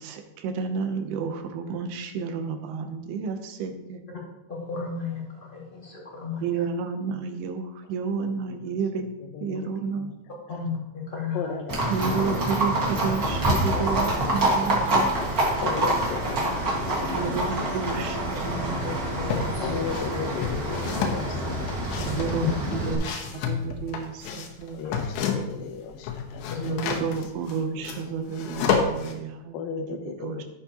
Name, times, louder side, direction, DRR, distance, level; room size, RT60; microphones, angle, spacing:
voice 1, 0.0-4.0 6.4-9.1 9.4-10.1 11.9-15.2 17.1-19.1 19.6-19.9 22.0-24.8 26.6-30.4, right 5 dB, 75° right, 6 dB, 2.6 m, -31 dB
voice 2, 4.5-6.6 10.5-10.8 11.1-11.6 18.8-18.9 19.3-19.7 22.4-22.5, left 5 dB, 40° left, -5 dB, 0.7 m, -33 dB
voice 3, 11.3-11.8 12.1-12.4 12.8-14.4 15.6-17.3 19.6-22.0 24.7-26.7 29.5-30.4, left 6 dB, 70° left, 4 dB, 2.3 m, -36 dB
Livestock farm animals working animals, 11.7-22.9, right 1 dB, 60° right, 0.9 m, -26 dB
sound 1, 18.8-19.5 19.9-25.7 25.9-29.1, left 6 dB, 90° left, 3.2 m, -30 dB
12.0 x 8.0 x 2.9 m, 0.94 s
omnidirectional pair, 4.9 m